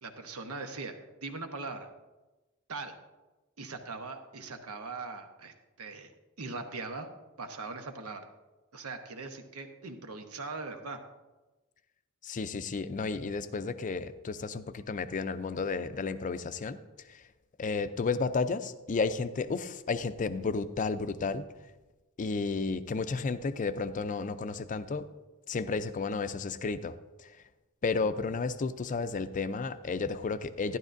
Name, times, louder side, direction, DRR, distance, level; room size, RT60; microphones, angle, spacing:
voice 1, 0.0-1.9 2.7-2.9 3.6-6.1 6.4-7.1 7.4-8.2 8.7-11.0, right 3 dB, 85° right, 6 dB, 1.0 m, -40 dB
voice 2, 12.2-16.8 17.1-17.2 17.6-21.5 22.2-25.1 25.5-27.3 27.8-30.8, left 4 dB, 35° left, 11 dB, 0.4 m, -32 dB
12.0 x 11.0 x 2.6 m, 1.1 s
head